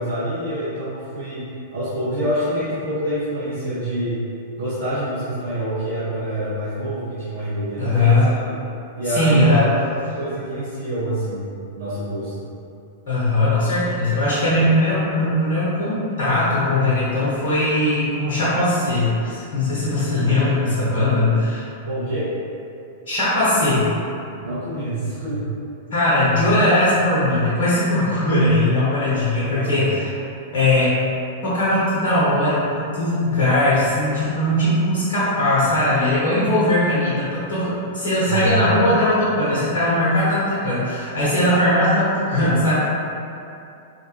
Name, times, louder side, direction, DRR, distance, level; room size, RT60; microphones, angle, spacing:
voice 1, 0.0-1.4 1.7-4.2 4.6-8.4 9.0-9.9 10.2-11.4 11.7-12.5 21.8-22.3 24.4-25.5 29.5-29.9 38.3-38.7, right 1 dB, 75° right, -14 dB, 0.8 m, -26 dB
voice 2, 7.8-8.3 9.1-9.7 13.1-21.6 23.1-23.9 25.9-30.2 30.5-30.9 31.4-42.8, left 1 dB, 60° left, -10 dB, 0.8 m, -19 dB
2.6 x 2.2 x 2.8 m, 2.6 s
figure-of-eight pair, 100°, 0 cm